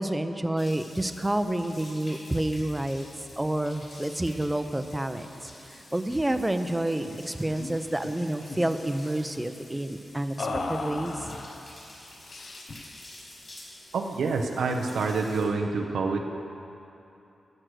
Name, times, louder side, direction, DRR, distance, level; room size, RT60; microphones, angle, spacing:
voice 1, 0.0-3.1 3.4-11.3, right 1 dB, 15° right, 8 dB, 0.6 m, -29 dB
sound 1, 0.6-15.5, left 1 dB, 40° left, 2.9 m, -49 dB
sound 2, 7.0-7.2 7.5-7.7 8.0-8.8 10.4-11.6 12.3-12.9, left 3 dB, 60° left, 0.8 m, -35 dB
voice 2, 13.9-16.2, right 4 dB, 85° right, 3 dB, 0.7 m, -27 dB
13.5 x 6.4 x 6.3 m, 2.9 s
cardioid pair, 85°, 0 cm